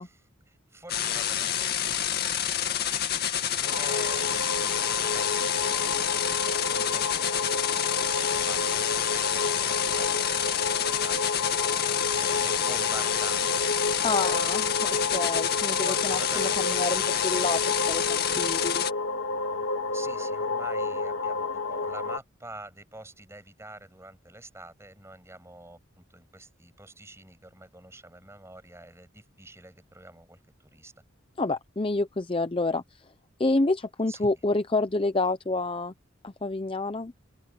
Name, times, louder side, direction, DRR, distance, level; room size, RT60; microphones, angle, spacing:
voice 1, 0.0-13.7 14.0-14.4 15.7-16.9 19.9-30.9 34.1-34.3, right 2 dB, 15° right, 7.6 m, -47 dB
sound 1, 0.9-18.9, left 9 dB, 50° left, 2.2 m, -28 dB
sound 2, 3.7-22.2, left 3 dB, 75° left, 2.7 m, -30 dB
voice 2, 14.0-18.9 31.4-32.8 33.4-35.9 36.2-37.1, left 2 dB, 25° left, 0.7 m, -28 dB
open air
head